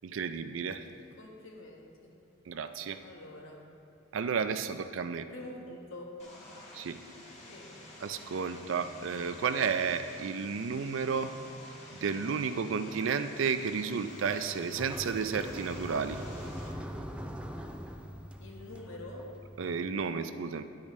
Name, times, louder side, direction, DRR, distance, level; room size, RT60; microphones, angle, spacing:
voice 1, 0.0-0.9 2.5-3.0 4.1-5.2 6.7-7.0 8.0-11.3 12.0-16.2 19.6-20.6, right 6 dB, 65° right, 10 dB, 0.4 m, -32 dB
voice 2, 1.2-2.1 3.0-3.6 5.3-6.1 7.5-7.7 18.4-19.3, left 1 dB, 70° left, -1 dB, 1.5 m, -46 dB
Vehicle, 6.2-16.7, left 1 dB, 35° left, 1.9 m, -50 dB
sound 1, 14.1-20.0, equal, 5° right, 0.4 m, -42 dB
10.5 x 8.5 x 3.2 m, 2.5 s
head